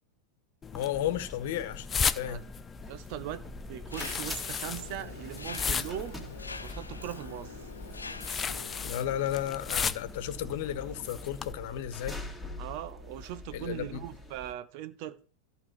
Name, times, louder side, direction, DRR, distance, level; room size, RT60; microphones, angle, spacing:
sound 1, 0.6-11.5, left 6 dB, 20° left, 0.6 m, -36 dB
voice 1, 0.7-2.4 8.8-12.2 13.5-14.0, left 11 dB, 50° left, 1.4 m, -33 dB
sound 2, 0.8-14.5, left 1 dB, ahead, 2.5 m, -45 dB
voice 2, 2.9-6.2 6.6-7.6 12.6-15.2, right 12 dB, 45° right, 0.8 m, -40 dB
Mechanisms, 3.9-8.9, left 4 dB, 75° left, 0.7 m, -45 dB
14.0 x 5.4 x 6.4 m
figure-of-eight pair, 90°, 0 cm